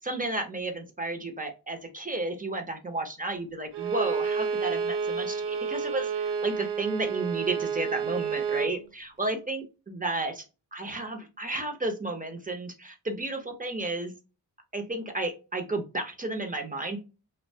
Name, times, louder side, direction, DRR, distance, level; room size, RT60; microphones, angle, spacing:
voice 1, 0.0-10.4 10.7-14.1 14.7-17.0, right 2 dB, 20° right, 4 dB, 0.6 m, -32 dB
Bowed string instrument, 3.7-8.8, right 6 dB, 75° right, 0.5 m, -30 dB
2.7 x 2.1 x 2.6 m, 0.29 s
wide cardioid pair, 90°, 42 cm